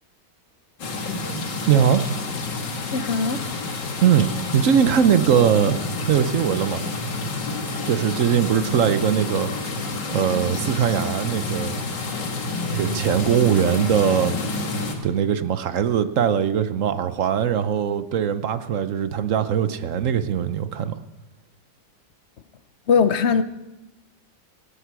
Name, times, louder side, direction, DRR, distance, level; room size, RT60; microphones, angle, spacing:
sound 1, 0.8-14.9, left 3 dB, 85° left, 2.4 m, -29 dB
voice 1, 1.7-2.0 4.0-5.8 6.1-6.8 7.8-9.8 10.1-11.7 12.7-14.3 15.0-21.0, right 8 dB, 60° right, 1.0 m, -21 dB
voice 2, 2.9-3.4 7.8-7.9 22.9-23.4, left 5 dB, 60° left, 0.7 m, -20 dB
17.5 x 16.5 x 4.7 m
omnidirectional pair, 1.8 m